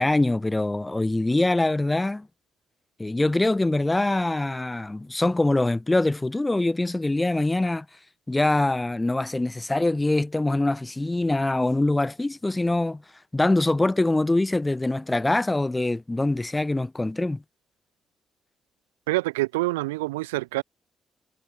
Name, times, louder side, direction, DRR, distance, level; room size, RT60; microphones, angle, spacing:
voice 1, 0.0-2.3 3.0-7.9 8.3-13.0 13.3-17.4, left 2 dB, 20° left, 2.7 m, -24 dB
voice 2, 19.1-20.6, right 20 dB, 90° right, 5.0 m, -26 dB
hypercardioid pair, 45°, 0 cm